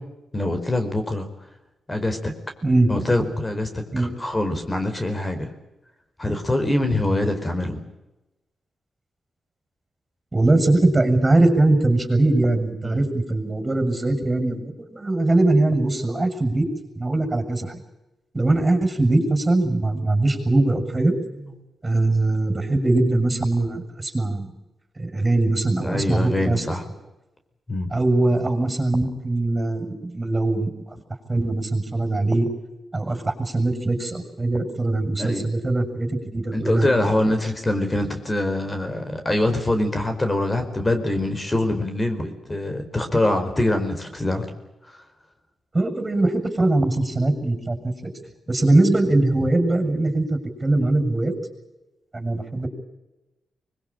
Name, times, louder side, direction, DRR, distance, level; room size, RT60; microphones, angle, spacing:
voice 1, 0.3-1.3 1.9-2.3 2.9-5.5 6.2-7.8 12.8-13.0 25.8-26.8 27.7-27.9 35.2-35.5 36.5-44.4 44.9-45.0 50.8-50.9, left 1 dB, 25° left, 7 dB, 4.7 m, -24 dB
voice 2, 10.3-16.7 17.0-17.8 18.3-21.1 21.8-24.5 25.0-26.6 27.9-30.7 31.3-32.5 32.9-36.9 45.7-48.1 48.5-51.3 52.1-52.7, right 2 dB, 25° right, 7 dB, 7.3 m, -21 dB
24.5 x 21.5 x 8.9 m, 1.0 s
cardioid pair, 70°, 0 cm